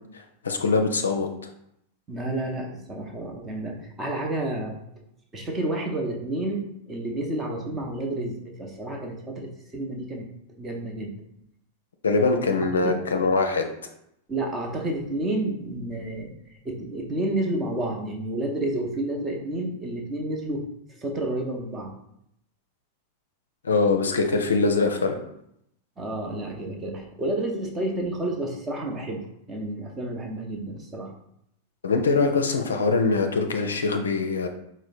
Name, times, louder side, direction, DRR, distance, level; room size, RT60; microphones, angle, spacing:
voice 1, 0.1-1.3 12.0-13.7 23.6-25.2 31.8-34.5, left 4 dB, 70° left, 5 dB, 0.4 m, -23 dB
voice 2, 2.1-4.8 5.3-10.3 10.6-11.1 12.8-13.0 14.3-16.3 16.6-20.7 21.0-21.9 26.0-31.1, right 1 dB, 20° right, 2 dB, 0.8 m, -30 dB
4.8 x 2.1 x 4.2 m, 0.75 s
figure-of-eight pair, 90°, 0 cm